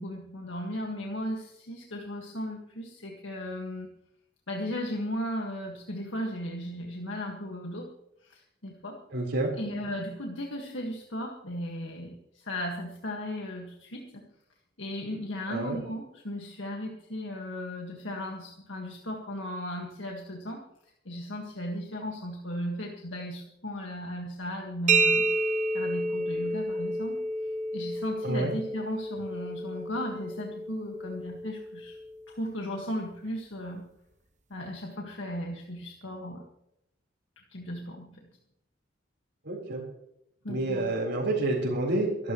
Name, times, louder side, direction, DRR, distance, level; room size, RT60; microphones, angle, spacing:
voice 1, 0.0-3.9 4.5-7.9 8.2-9.0 9.6-14.2 14.8-20.6 21.1-25.4 25.7-27.2 27.7-32.0 32.3-33.8 34.5-36.4 37.5-38.2 40.4-40.9, equal, 75° left, 0 dB, 1.8 m, -36 dB
voice 2, 9.1-9.5 15.5-15.8 28.2-28.5 39.4-39.8 40.5-42.3, right 2 dB, 65° right, -6 dB, 4.3 m, -29 dB
sound 1, 24.9-32.4, right 2 dB, 40° right, 1.0 m, -30 dB
24.0 x 12.5 x 3.2 m, 0.79 s
head